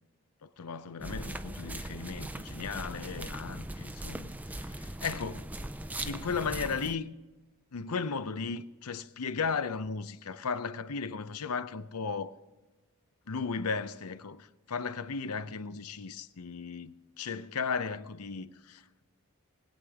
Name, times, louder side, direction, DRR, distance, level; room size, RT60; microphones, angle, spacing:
voice 1, 0.4-5.5 6.0-7.1 7.7-12.4 13.3-18.9, left 5 dB, 90° left, 0.7 m, -36 dB
sound 1, 1.0-6.9, right 1 dB, 5° right, 0.4 m, -39 dB
20.5 x 8.8 x 3.6 m
head